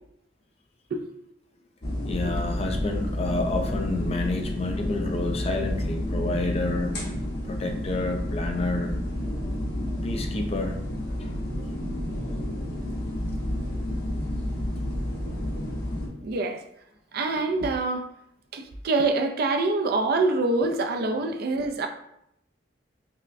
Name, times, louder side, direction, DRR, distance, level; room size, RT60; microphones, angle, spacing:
sound 1, 1.8-16.1, left 1 dB, 65° left, 1.2 m, -30 dB
voice 1, 2.1-7.0 7.4-9.0 10.0-10.8 11.2-11.4 21.2-21.3, left 2 dB, 35° left, 3 dB, 0.4 m, -29 dB
voice 2, 16.2-16.6 17.1-18.1 18.5-21.9, right 3 dB, 55° right, 5 dB, 0.4 m, -25 dB
5.4 x 2.1 x 2.5 m, 0.76 s
head